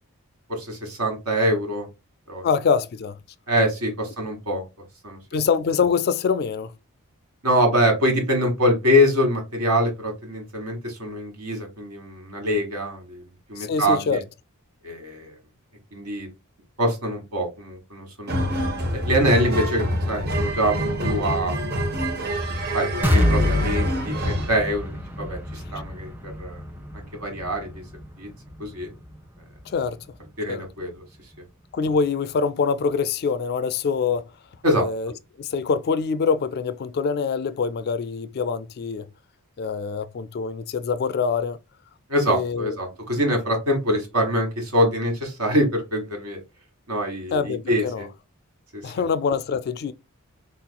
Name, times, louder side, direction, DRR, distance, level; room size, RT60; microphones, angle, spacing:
voice 1, 0.5-1.9 2.3-2.5 3.5-4.6 5.0-5.2 7.4-13.2 13.5-14.2 14.8-15.3 15.9-16.3 16.8-18.5 18.9-20.7 21.0-21.6 22.1-22.3 22.7-26.6 26.9-27.8 28.2-28.3 28.6-28.9 30.4-31.0 34.6-34.9 42.1-46.4 46.9-48.1 48.7-49.1, equal, 80° right, 1.5 m, -24 dB
voice 2, 2.4-3.2 5.3-6.7 13.6-14.2 29.7-30.0 30.5-30.6 31.7-34.3 34.7-35.1 35.4-39.1 39.6-41.6 42.3-42.7 47.3-48.1 48.8-49.9, left 5 dB, 45° left, 0.3 m, -24 dB
sound 1, 18.3-24.6, equal, 45° right, 0.8 m, -26 dB
sound 2, 23.0-30.8 31.2-31.3 31.7-31.8, left 1 dB, 10° right, 0.7 m, -28 dB
4.1 x 2.8 x 2.3 m
head